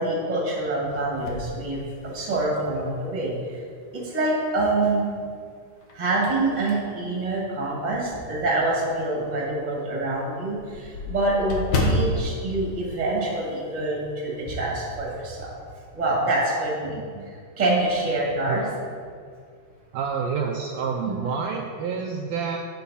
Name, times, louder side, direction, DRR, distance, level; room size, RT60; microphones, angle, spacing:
voice 1, 0.0-3.3 3.9-5.0 5.9-15.5 15.9-17.0 17.6-18.6 21.1-21.2, right 2 dB, 20° right, -4 dB, 1.5 m, -26 dB
sound 1, 1.2-2.5 3.0-3.1 4.6-5.1 5.6-8.2 8.7-8.8 9.2-9.3 9.6-9.7 9.9-13.7 13.9-14.2 14.5-15.1, left 1 dB, 75° left, 0.9 m, -31 dB
voice 2, 16.9-17.3 18.5-18.6 19.9-22.6, right 5 dB, 80° right, 1 dB, 1.6 m, -28 dB
8.4 x 6.8 x 4.2 m, 2.1 s
omnidirectional pair, 3.4 m